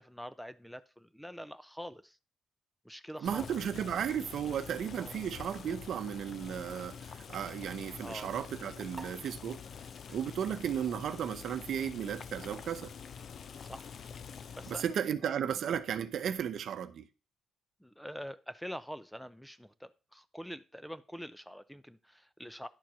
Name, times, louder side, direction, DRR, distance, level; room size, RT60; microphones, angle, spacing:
voice 1, 0.0-2.2 2.8-3.5 5.0-5.2 8.0-8.3 13.6-13.9 14.5-14.8 15.5-15.6 17.8-22.7, equal, ahead, 0.6 m, -45 dB
voice 2, 3.2-9.6 10.1-12.9 14.7-17.1, right 9 dB, 65° right, 0.8 m, -35 dB
Boiling, 3.3-15.0, left 6 dB, 55° left, 0.7 m, -46 dB
sound 1, 8.9-15.7, right 3 dB, 20° right, 2.0 m, -57 dB
10.5 x 4.4 x 6.1 m
cardioid pair, 90°, 0 cm